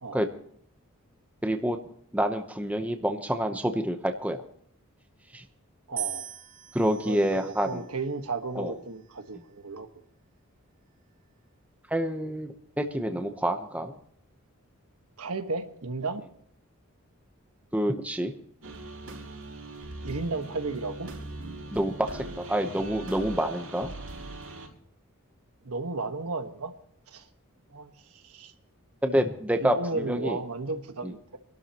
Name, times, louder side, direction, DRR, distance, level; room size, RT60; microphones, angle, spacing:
voice 1, 1.4-1.8 2.1-4.4 5.3-5.4 6.7-7.9 8.5-8.7 11.9-13.9 17.7-18.3 21.7-23.9 29.0-30.4 31.0-31.1, right 1 dB, 5° right, 6 dB, 0.8 m, -27 dB
voice 2, 5.9-6.3 7.0-9.9 15.2-16.2 20.0-21.1 25.6-26.7 27.1-27.2 27.7-28.5 29.6-31.4, right 3 dB, 90° right, 7 dB, 1.3 m, -34 dB
sound 1, 6.0-8.2 9.0-9.5, right 11 dB, 35° right, 2.0 m, -40 dB
sound 2, 18.6-24.7, right 2 dB, 75° right, 5.1 m, -41 dB
26.0 x 12.0 x 2.9 m, 0.64 s
head